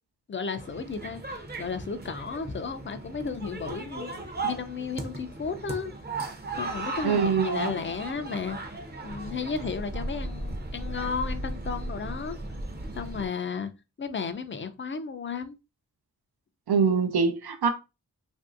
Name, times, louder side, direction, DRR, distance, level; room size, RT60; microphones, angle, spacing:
voice 1, 0.3-5.9 6.6-8.6 9.0-12.4 12.9-13.7 14.0-15.6, left 5 dB, 35° left, 0.4 m, -34 dB
sound 1, 0.6-13.3, right 2 dB, 25° right, 0.6 m, -36 dB
voice 2, 7.0-7.7 16.7-17.7, right 5 dB, 90° right, 0.6 m, -24 dB
3.0 x 2.6 x 2.4 m
wide cardioid pair, 75°, 37 cm